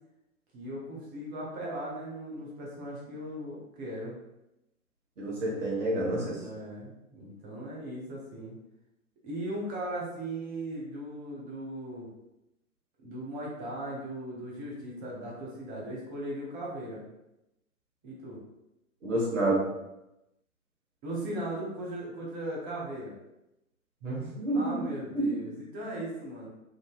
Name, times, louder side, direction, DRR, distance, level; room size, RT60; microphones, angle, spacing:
voice 1, 0.5-4.2 6.4-8.6 9.2-12.1 13.0-17.0 18.0-18.4 21.0-23.1 24.5-26.5, right 1 dB, 15° right, -4 dB, 0.5 m, -38 dB
voice 2, 5.2-6.4 19.0-19.6 24.0-24.9 25.1-25.4, right 1 dB, 60° right, -4 dB, 1.2 m, -28 dB
3.6 x 2.5 x 2.3 m, 0.91 s
figure-of-eight pair, 120°, 42 cm